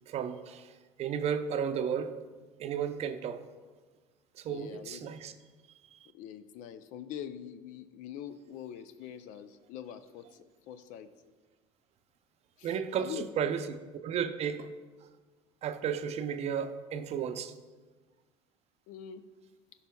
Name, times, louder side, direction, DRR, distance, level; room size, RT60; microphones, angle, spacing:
voice 1, 0.1-0.7 1.0-2.1 2.6-3.4 4.4-5.3 5.9-6.0 12.6-14.7 15.6-17.5, right 7 dB, 50° right, 9 dB, 0.6 m, -33 dB
voice 2, 4.5-5.2 6.1-11.1 12.6-13.2 18.9-19.2, left 9 dB, 65° left, 12 dB, 0.5 m, -44 dB
14.0 x 5.5 x 2.3 m, 1.3 s
supercardioid pair, 80°, 14 cm